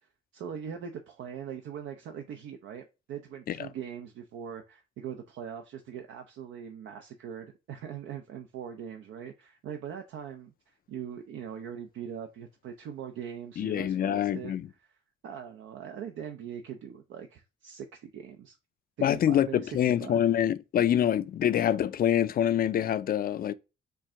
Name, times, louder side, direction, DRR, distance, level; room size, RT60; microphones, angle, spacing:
voice 1, 0.3-14.9 15.2-18.6 19.0-20.2, right 8 dB, 75° right, 0.6 m, -41 dB
voice 2, 13.6-14.7 19.0-23.5, left 10 dB, 50° left, 0.4 m, -26 dB
4.5 x 2.5 x 4.4 m
cardioid pair, 90°, 20 cm